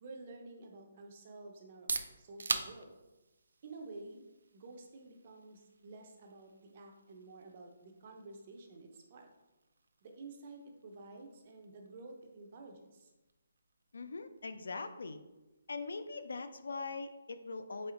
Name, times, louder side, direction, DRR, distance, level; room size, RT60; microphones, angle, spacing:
voice 1, 0.0-1.9 2.2-2.9 3.6-4.2 4.5-9.3 10.0-13.1, right 3 dB, 25° right, 3 dB, 0.5 m, -51 dB
sound 1, 1.6-17.2, right 4 dB, 80° right, 0.4 m, -47 dB
voice 2, 13.9-15.2 15.7-17.9, left 3 dB, 70° left, 10 dB, 0.4 m, -41 dB
4.3 x 3.3 x 3.7 m, 1.0 s
hypercardioid pair, 180°, 0 cm